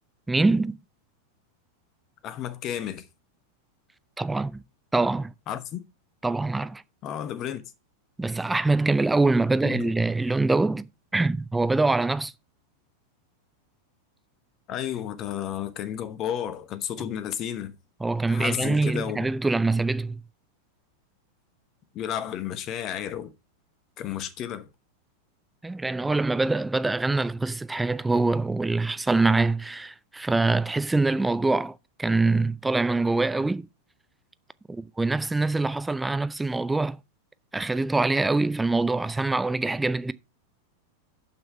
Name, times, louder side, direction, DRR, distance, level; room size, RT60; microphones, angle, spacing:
voice 1, 0.3-0.8 4.2-4.6 4.9-5.3 6.2-6.8 8.2-10.9 11.1-12.3 18.0-20.2 25.6-33.7 34.7-37.0 37.5-40.1, right 3 dB, 10° right, 0.4 m, -24 dB
voice 2, 2.2-3.1 5.5-5.8 7.0-7.6 9.6-10.0 14.7-17.7 18.3-19.3 21.9-23.3 24.0-24.7, left 10 dB, 35° left, 1.0 m, -32 dB
6.9 x 5.9 x 5.5 m
figure-of-eight pair, 90°, 0 cm